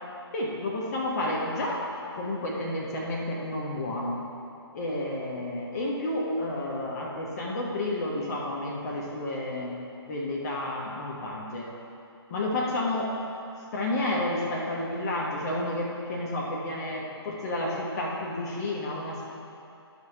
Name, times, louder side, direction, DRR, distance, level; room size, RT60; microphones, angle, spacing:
voice 1, 0.3-1.8 2.1-4.2 4.7-9.7 10.1-11.7 12.3-13.1 13.7-19.3, left 1 dB, 35° left, -3 dB, 1.2 m, -31 dB
12.5 x 5.7 x 3.4 m, 2.7 s
figure-of-eight pair, 135°, 14 cm